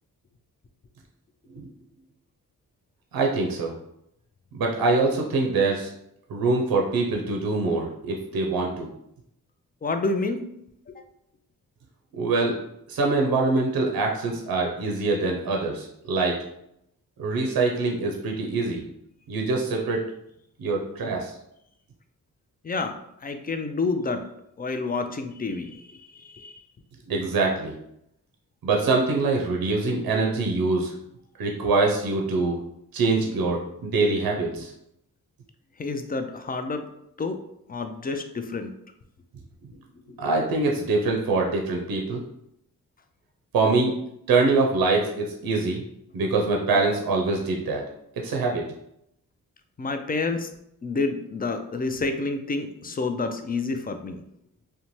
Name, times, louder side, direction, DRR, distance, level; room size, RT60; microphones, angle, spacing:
voice 1, 3.1-3.7 4.5-5.9 6.3-8.9 12.2-12.5 12.9-16.4 17.2-18.8 19.3-20.0 20.6-21.3 27.1-27.7 28.6-30.9 31.4-32.6 32.9-34.7 40.2-42.2 43.5-43.9 44.3-45.8 46.1-47.8 48.2-48.6, right 3 dB, 75° right, 0 dB, 0.6 m, -24 dB
voice 2, 9.8-10.5 10.9-11.0 22.6-23.0 23.2-24.2 24.6-26.6 35.8-36.9 37.2-37.4 37.7-38.7 40.1-40.2 49.8-50.5 50.8-54.2, left 3 dB, 25° left, 7 dB, 0.4 m, -29 dB
2.6 x 2.2 x 3.0 m, 0.77 s
cardioid pair, 45°, 36 cm